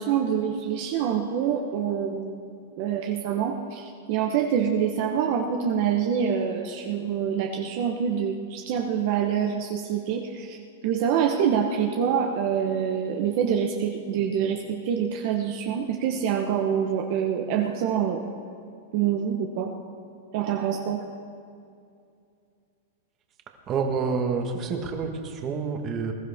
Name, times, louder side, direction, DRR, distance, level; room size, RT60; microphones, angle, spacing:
voice 1, 0.0-10.6 10.8-18.2 18.9-19.7 20.3-21.0, right 8 dB, 50° right, 2 dB, 1.1 m, -26 dB
voice 2, 23.7-26.1, right 5 dB, 30° right, 4 dB, 1.6 m, -28 dB
21.0 x 12.5 x 3.6 m, 2.5 s
hypercardioid pair, 140°, 0 cm